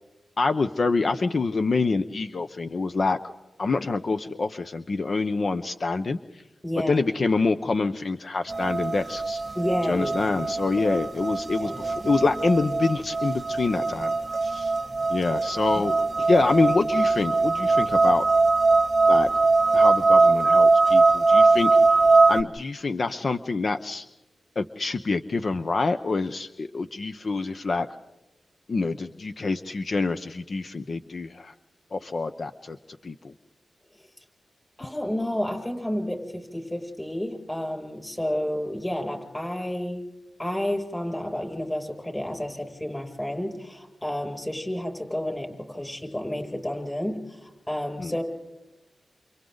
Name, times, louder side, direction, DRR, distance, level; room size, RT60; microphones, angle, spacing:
voice 1, 0.4-3.2 3.6-6.4 6.9-9.4 9.8-14.1 14.4-14.7 15.1-18.2 19.1-19.3 19.7-24.1 24.6-27.9 28.7-31.5 31.9-33.3 48.0-48.1, left 3 dB, 50° left, 9 dB, 0.9 m, -26 dB
voice 2, 6.6-7.0 9.6-10.4 11.6-11.8 34.8-40.0 40.4-48.2, left 1 dB, 10° left, 2 dB, 7.1 m, -30 dB
sound 1, 8.5-22.4, right 3 dB, 35° right, 1.0 m, -21 dB
29.0 x 29.0 x 4.0 m, 1.0 s
cardioid pair, 80°, 0 cm